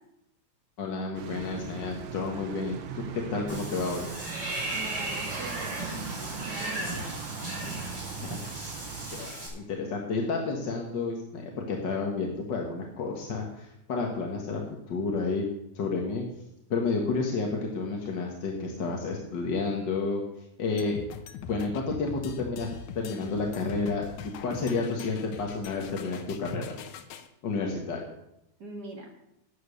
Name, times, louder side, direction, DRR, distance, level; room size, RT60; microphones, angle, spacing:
voice 1, 0.8-4.1 8.2-8.5 9.1-15.4 15.7-16.2 16.7-20.2 20.6-21.0 21.5-22.7 23.0-26.8 27.4-28.1, left 4 dB, 45° left, 1 dB, 1.7 m, -31 dB
sound 1, 1.1-9.3, right 6 dB, 75° right, 1.1 m, -40 dB
Water / Bathtub (filling or washing), 3.5-9.5, right 1 dB, 20° right, 6.4 m, -36 dB
voice 2, 4.7-7.2 7.7-8.4 28.6-29.1, right 3 dB, 40° right, 3 dB, 2.2 m, -43 dB
sound 2, 20.8-27.3, left 7 dB, 80° left, 2.4 m, -42 dB
13.0 x 9.3 x 6.9 m, 0.85 s
omnidirectional pair, 3.4 m